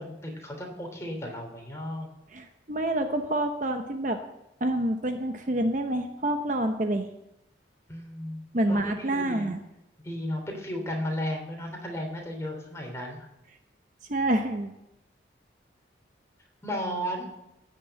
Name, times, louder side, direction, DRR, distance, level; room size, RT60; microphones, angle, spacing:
voice 1, 0.0-2.1 7.9-9.5 10.0-13.3 16.6-17.3, equal, 15° left, 1 dB, 3.1 m, -34 dB
voice 2, 2.3-4.2 4.6-7.1 8.5-9.6 14.1-14.7, right 1 dB, 40° right, 6 dB, 0.9 m, -27 dB
16.0 x 7.0 x 7.6 m, 0.87 s
head